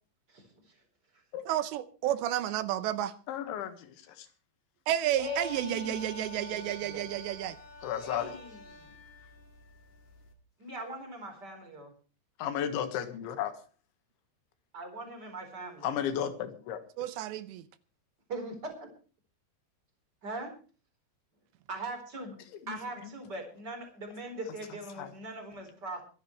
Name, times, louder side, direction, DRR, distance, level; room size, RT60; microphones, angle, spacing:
voice 1, 1.5-3.1 4.9-7.6 17.0-17.6, right 12 dB, 75° right, 13 dB, 2.8 m, -31 dB
voice 2, 3.3-4.3 7.8-8.3 12.4-13.5 15.8-16.8 22.7-22.8 25.0-25.1, left 9 dB, 80° left, 10 dB, 3.9 m, -34 dB
sound 1, 5.1-10.3, left 3 dB, 45° left, 2.6 m, -48 dB
voice 3, 5.2-7.0 8.0-8.9 10.6-11.9 14.7-15.9 18.3-18.9 20.2-20.5 21.7-22.4 22.7-26.0, right 1 dB, 25° right, 4 dB, 4.2 m, -41 dB
24.5 x 10.5 x 3.2 m, 0.38 s
omnidirectional pair, 5.4 m